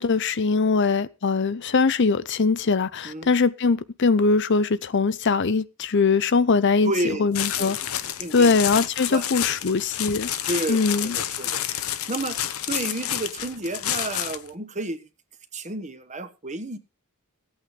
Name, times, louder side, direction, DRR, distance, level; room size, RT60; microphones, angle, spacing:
voice 1, 0.0-7.8 8.3-10.3 10.7-11.1, left 4 dB, 55° left, 0.6 m, -21 dB
voice 2, 6.8-7.3 7.6-7.7 8.2-8.6 9.1-9.2 10.5-11.6 12.1-12.4 12.7-15.0 15.5-16.8, right 2 dB, 35° right, 1.3 m, -30 dB
sound 1, 7.3-14.5, left 11 dB, 75° left, 1.0 m, -29 dB
15.5 x 8.7 x 5.1 m
head